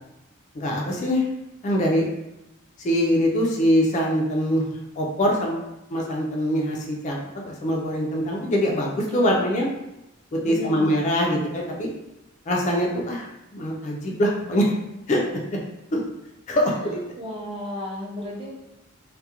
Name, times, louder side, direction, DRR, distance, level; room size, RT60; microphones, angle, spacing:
voice 1, 0.5-1.2 1.6-2.0 2.8-4.6 5.0-9.7 10.3-11.9 12.5-14.7 15.1-15.2 15.9-16.0 16.5-17.0, equal, 35° left, -1 dB, 0.3 m, -23 dB
voice 2, 9.1-9.4 10.4-10.9 16.5-18.5, left 1 dB, 25° right, -4 dB, 0.5 m, -34 dB
2.3 x 2.1 x 2.8 m, 0.91 s
head